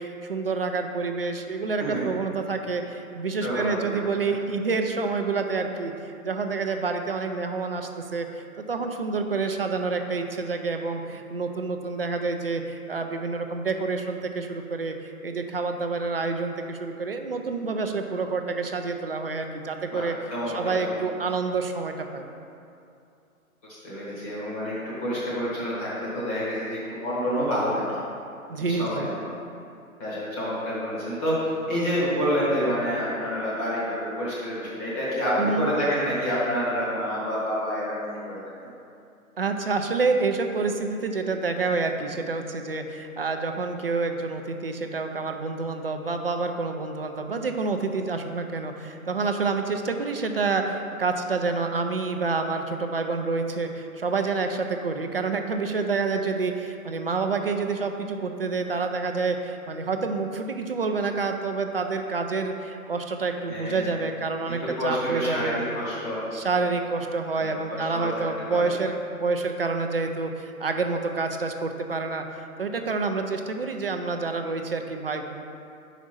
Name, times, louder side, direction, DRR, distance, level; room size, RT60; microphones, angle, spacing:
voice 1, 0.0-5.9 6.2-8.3 8.6-20.1 20.5-22.3 28.5-29.1 35.4-35.7 39.4-65.6 66.3-75.2, right 4 dB, 45° right, 5 dB, 0.5 m, -28 dB
voice 2, 3.4-4.3 19.9-20.5 20.9-21.0 23.8-27.8 28.6-29.0 30.0-31.4 31.7-38.4 63.5-63.9 64.6-66.2 67.2-67.4 67.7-68.2 68.5-68.7, equal, 10° left, -8 dB, 0.8 m, -28 dB
5.1 x 5.0 x 5.6 m, 2.6 s
figure-of-eight pair, 140°, 44 cm